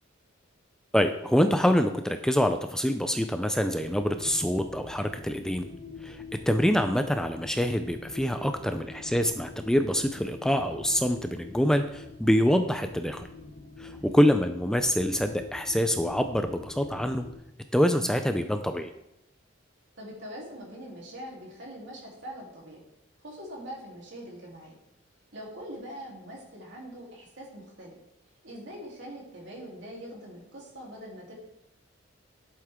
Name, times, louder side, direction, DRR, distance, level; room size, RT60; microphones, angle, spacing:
voice 1, 0.9-5.7 6.0-6.2 6.5-13.3 13.8-17.3 17.7-18.9, equal, 5° left, 7 dB, 0.4 m, -25 dB
sound 1, 3.8-17.4, left 3 dB, 45° left, 1.2 m, -45 dB
voice 2, 13.8-14.2 20.0-22.8 23.2-24.8 25.3-28.0 28.4-31.3, equal, 65° right, -3 dB, 3.4 m, -43 dB
11.5 x 7.6 x 3.7 m, 0.82 s
head